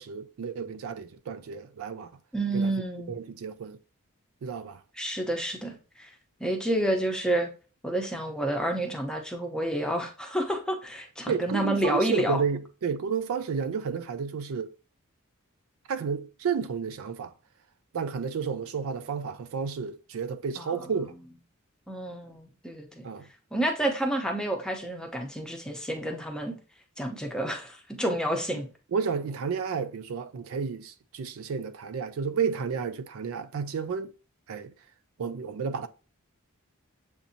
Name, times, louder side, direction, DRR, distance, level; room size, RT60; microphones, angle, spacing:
voice 1, 0.0-2.1 2.5-2.7 3.1-3.8 4.4-4.8 11.3-14.7 15.9-17.3 17.9-21.1 23.0-23.3 28.9-34.1 34.5-34.7 35.2-35.9, right 6 dB, 65° right, 0.4 m, -31 dB
voice 2, 2.3-3.1 5.0-6.1 6.4-7.5 7.8-12.4 20.6-20.9 21.9-23.1 23.5-26.5 27.0-28.7, right 1 dB, 5° left, 0.7 m, -29 dB
7.1 x 2.7 x 2.6 m
head